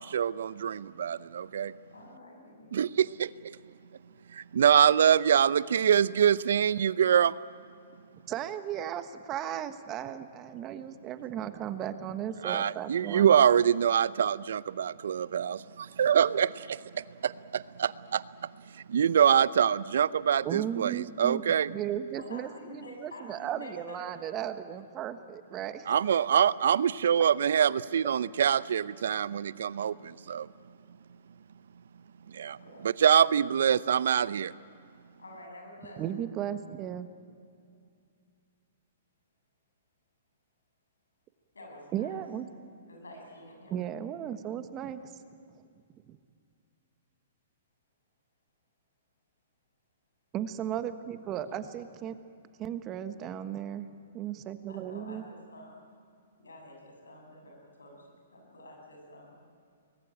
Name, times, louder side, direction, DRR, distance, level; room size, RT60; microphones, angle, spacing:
voice 1, 0.0-1.7 2.7-3.6 4.3-7.4 12.4-21.7 25.9-30.5 32.3-32.6 32.8-34.5, right 8 dB, 70° right, 19 dB, 0.6 m, -25 dB
voice 2, 1.9-2.7 22.1-24.4 32.6-32.8 35.2-36.2 41.5-42.2 42.9-43.8 51.4-51.8 54.7-55.8 56.4-59.3, left 1 dB, 90° left, 1 dB, 7.8 m, -49 dB
voice 3, 8.3-13.3 20.4-21.4 21.7-25.9 36.0-37.1 41.9-42.4 43.7-45.0 46.1-46.2 50.3-52.2 52.6-55.2, right 10 dB, 30° right, 10 dB, 1.3 m, -35 dB
24.0 x 20.0 x 9.0 m, 2.4 s
hypercardioid pair, 125°, 0 cm